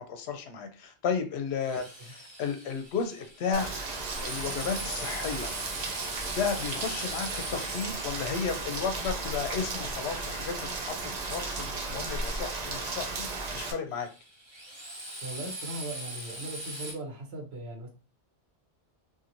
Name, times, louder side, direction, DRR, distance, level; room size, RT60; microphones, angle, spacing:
voice 1, 0.0-3.7 4.2-5.5 6.4-13.3 13.5-14.1, left 6 dB, 80° left, 7 dB, 0.8 m, -33 dB
Drill, 1.6-10.5 13.9-16.9, right 1 dB, 25° right, 1.0 m, -42 dB
Rain, 3.5-13.7, right 3 dB, 50° right, 0.5 m, -35 dB
voice 2, 15.2-17.9, right 1 dB, 75° right, 1 dB, 1.1 m, -39 dB
2.8 x 2.6 x 2.5 m, 0.33 s
omnidirectional pair, 1.1 m